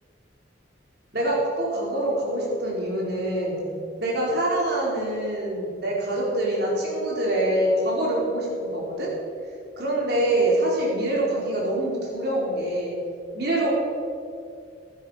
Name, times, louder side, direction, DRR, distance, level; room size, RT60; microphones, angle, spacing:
voice 1, 1.1-3.6 4.0-9.1 9.8-13.0 13.3-13.7, right 1 dB, 55° right, -4 dB, 4.4 m, -25 dB
15.5 x 12.0 x 5.8 m, 2.4 s
head